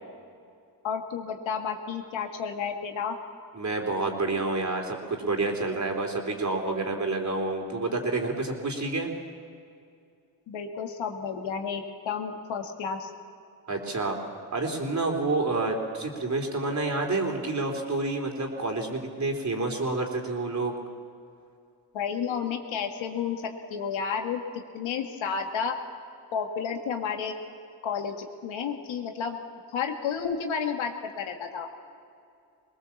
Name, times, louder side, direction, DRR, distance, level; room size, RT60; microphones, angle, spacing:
voice 1, 0.8-3.2 10.5-13.1 21.9-23.4 23.7-25.7 26.3-27.4 27.8-29.4 29.7-31.7, left 6 dB, 85° left, 3 dB, 2.0 m, -31 dB
voice 2, 3.5-9.1 13.7-14.2 14.5-20.7, right 3 dB, 40° right, 2 dB, 3.6 m, -29 dB
21.5 x 19.5 x 7.2 m, 2.4 s
cardioid pair, 75°, 45 cm